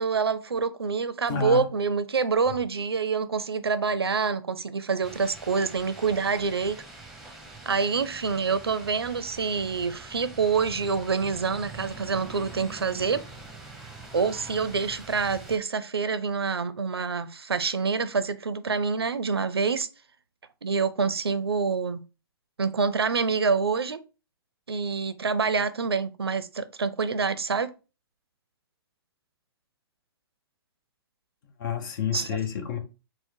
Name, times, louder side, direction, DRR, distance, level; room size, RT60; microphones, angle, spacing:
voice 1, 0.0-6.8 7.7-13.2 14.1-19.9 20.6-22.0 22.6-24.0 24.7-27.7 32.1-32.3, right 5 dB, 90° right, 0.5 m, -26 dB
voice 2, 1.3-1.6 31.6-32.8, left 7 dB, 55° left, 0.9 m, -29 dB
sound 1, 5.0-15.6, right 3 dB, ahead, 1.0 m, -44 dB
4.6 x 2.1 x 4.5 m
hypercardioid pair, 120°, 13 cm